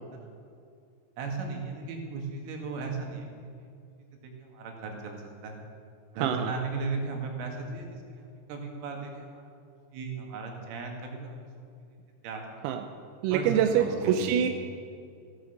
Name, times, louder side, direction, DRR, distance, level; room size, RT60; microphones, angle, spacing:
voice 1, 1.2-3.7 4.2-5.6 6.2-9.4 9.9-11.5 12.2-12.7 13.3-14.4, right 4 dB, 70° right, 2 dB, 4.4 m, -36 dB
voice 2, 6.2-6.5 12.6-12.8 13.2-14.5, right 9 dB, 90° right, 5 dB, 3.5 m, -25 dB
15.5 x 12.5 x 6.6 m, 2.4 s
omnidirectional pair, 6.0 m